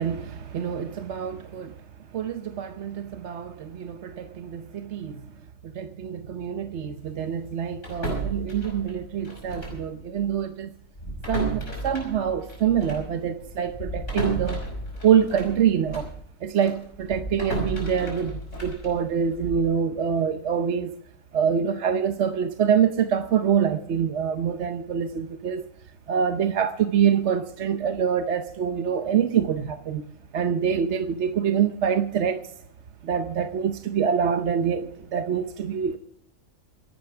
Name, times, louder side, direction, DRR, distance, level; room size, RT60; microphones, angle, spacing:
voice 1, 0.0-1.8 2.1-5.3 5.6-10.7 11.3-14.6 15.0-16.1 16.4-21.0 21.3-25.7 26.1-30.1 30.3-32.4 33.0-36.0, right 8 dB, 60° right, 1.0 m, -25 dB
sound 1, 7.8-9.9 10.1-10.3 10.9-16.2 16.6-19.7, right 1 dB, 60° left, 5.9 m, -33 dB
27.0 x 11.5 x 3.5 m
omnidirectional pair, 1.4 m